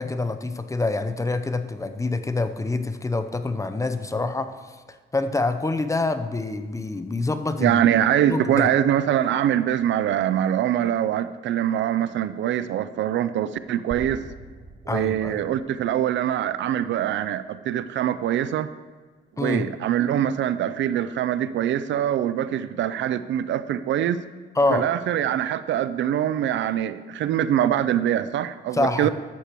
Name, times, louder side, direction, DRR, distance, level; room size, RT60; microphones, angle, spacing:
voice 1, 0.0-7.8 8.3-8.7 14.9-15.4 19.4-19.6 24.6-24.9 28.7-29.1, left 2 dB, 15° left, 10 dB, 0.6 m, -26 dB
voice 2, 7.6-14.2 14.9-18.7 19.4-24.2 24.7-29.1, right 10 dB, 70° right, 14 dB, 0.5 m, -23 dB
sound 1, 13.9-17.8, right 3 dB, 40° right, 1.1 m, -44 dB
13.0 x 8.2 x 3.0 m, 1.5 s
cardioid pair, 90°, 20 cm